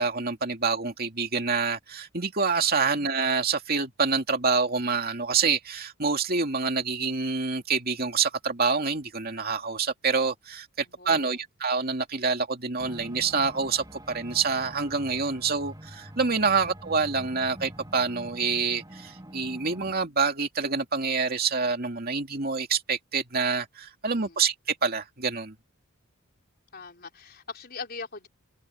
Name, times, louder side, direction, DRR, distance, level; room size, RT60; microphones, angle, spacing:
voice 1, 0.0-25.5, right 5 dB, 45° right, 2.4 m, -27 dB
voice 2, 10.8-11.4 16.4-16.5 24.1-24.4 26.7-28.3, left 4 dB, 45° left, 4.1 m, -41 dB
sound 1, 12.8-19.9, right 1 dB, 20° right, 3.8 m, -45 dB
head